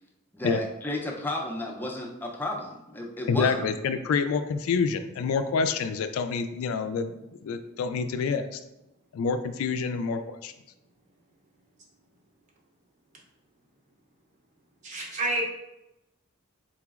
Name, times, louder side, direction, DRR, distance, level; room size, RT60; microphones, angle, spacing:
voice 1, 0.3-3.6 4.0-4.1, left 1 dB, 10° left, 0 dB, 0.4 m, -33 dB
voice 2, 3.3-7.1 7.4-8.6 9.1-10.5, left 5 dB, 80° left, 10 dB, 0.3 m, -27 dB
voice 3, 14.8-15.5, right 1 dB, 35° right, 0 dB, 0.7 m, -28 dB
4.0 x 2.9 x 2.3 m, 0.93 s
head